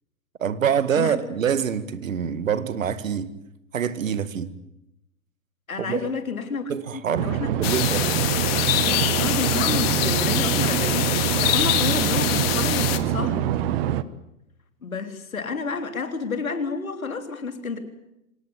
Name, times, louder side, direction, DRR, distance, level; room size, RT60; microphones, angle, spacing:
voice 1, 0.4-3.3 3.7-4.5 5.8-6.1 6.7-8.1, right 8 dB, 70° right, 2.1 m, -25 dB
voice 2, 5.7-7.9 9.2-13.5 14.8-17.8, left 4 dB, 80° left, 3.7 m, -30 dB
sound 1, 7.1-14.0, right 11 dB, 45° right, 1.4 m, -25 dB
sound 2, 7.6-13.0, left 14 dB, 45° left, 2.3 m, -24 dB
26.5 x 18.5 x 9.7 m
figure-of-eight pair, 105°, 41 cm